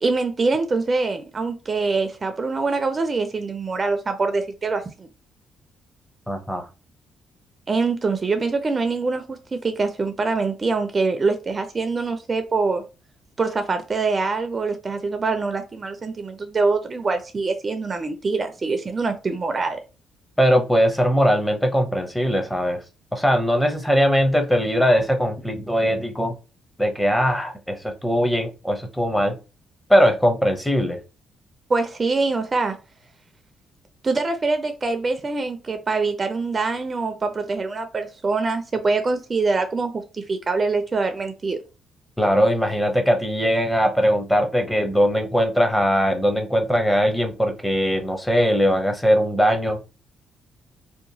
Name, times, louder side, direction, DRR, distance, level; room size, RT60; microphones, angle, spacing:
voice 1, 0.0-5.1 7.7-12.8 13.4-19.8 31.7-32.8 34.0-41.6, right 3 dB, 35° right, 0.4 m, -24 dB
voice 2, 6.3-6.6 20.4-22.8 23.1-26.3 26.8-29.4 29.9-31.0 42.2-49.8, equal, 5° left, 0.6 m, -20 dB
2.8 x 2.2 x 2.6 m
cardioid pair, 90°, 0 cm